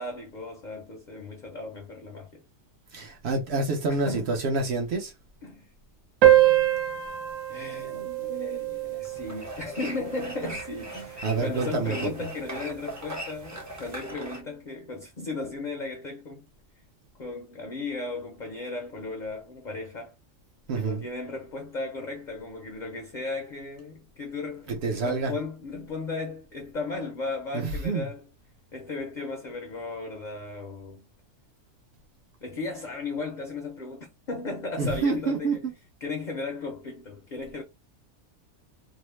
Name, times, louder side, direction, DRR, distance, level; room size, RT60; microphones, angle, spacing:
voice 1, 0.0-2.4 3.9-4.3 5.4-5.7 7.5-16.5 17.2-20.1 20.7-28.3 28.7-31.0 32.4-35.7 36.0-37.6, left 3 dB, 50° left, 0.6 m, -36 dB
voice 2, 2.9-5.1 11.2-12.3 20.7-21.0 24.7-25.3 27.5-28.1 34.8-35.7, right 3 dB, 60° right, 0.9 m, -27 dB
sound 1, 6.2-11.2, right 13 dB, 85° right, 1.0 m, -25 dB
sound 2, 9.0-14.4, right 1 dB, 20° right, 0.5 m, -40 dB
2.7 x 2.1 x 3.0 m
omnidirectional pair, 1.3 m